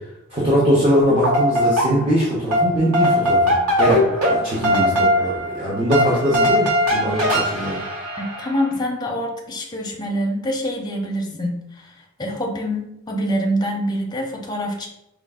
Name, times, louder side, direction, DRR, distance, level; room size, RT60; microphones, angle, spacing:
voice 1, 0.3-7.8, equal, 25° right, -7 dB, 0.8 m, -21 dB
sound 1, 1.0-2.2 2.5-8.6, left 1 dB, 85° right, 1.1 m, -20 dB
voice 2, 8.2-14.9, equal, 20° left, 0 dB, 0.6 m, -25 dB
4.5 x 2.3 x 3.6 m, 0.83 s
head